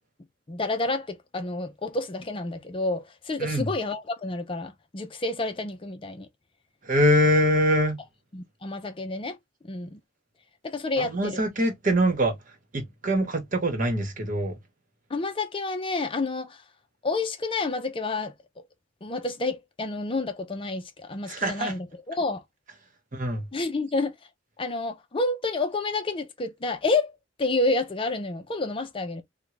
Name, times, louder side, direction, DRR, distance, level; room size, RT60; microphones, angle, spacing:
voice 1, 0.5-6.3 8.3-9.4 9.6-10.0 10.6-11.4 15.1-16.6 17.0-18.3 19.0-22.4 23.5-24.1 24.6-27.1 27.4-29.2, left 3 dB, 30° left, 0.5 m, -29 dB
voice 2, 6.9-8.0 11.0-12.3 12.7-14.5 21.3-21.7 23.1-23.4, equal, 45° right, 1.1 m, -23 dB
3.7 x 2.2 x 3.1 m
head